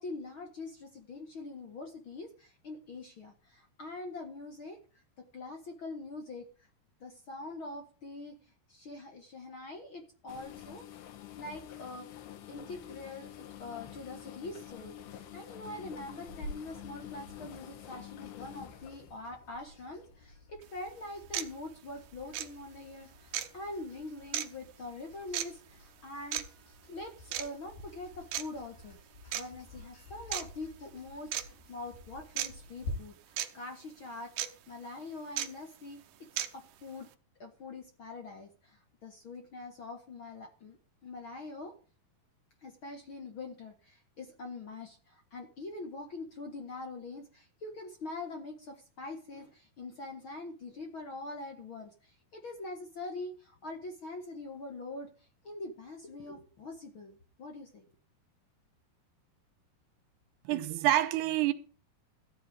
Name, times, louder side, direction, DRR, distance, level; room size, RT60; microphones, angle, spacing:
voice 1, 0.0-4.8 5.2-6.5 7.0-8.4 8.7-10.9 11.4-12.1 12.5-26.5 26.9-29.0 29.3-34.3 34.7-36.0 36.5-37.1 37.4-40.8 41.0-41.7 42.6-55.1 55.4-57.8, left 2 dB, 50° left, 1.6 m, -44 dB
sound 1, 10.3-20.4 21.1-21.4 21.9-22.1 22.9-23.3 23.6-23.7 24.6-24.7, left 12 dB, 90° left, 3.6 m, -48 dB
sound 2, 16.3-32.9, left 1 dB, 65° left, 8.0 m, -50 dB
sound 3, 20.6-20.7 21.3-21.5 22.3-22.5 23.3-23.5 24.3-24.5 25.3-25.5 26.3-26.4 27.3-27.5 28.3-28.4 29.3-29.4 30.3-30.5 31.3-31.4 32.4-32.5 33.4-33.5 34.4-34.5 35.4-35.5 36.4-36.5, right 12 dB, 70° right, 2.2 m, -33 dB
voice 2, 60.5-61.5, right 13 dB, 85° right, 3.0 m, -27 dB
15.0 x 8.4 x 5.1 m
omnidirectional pair, 4.7 m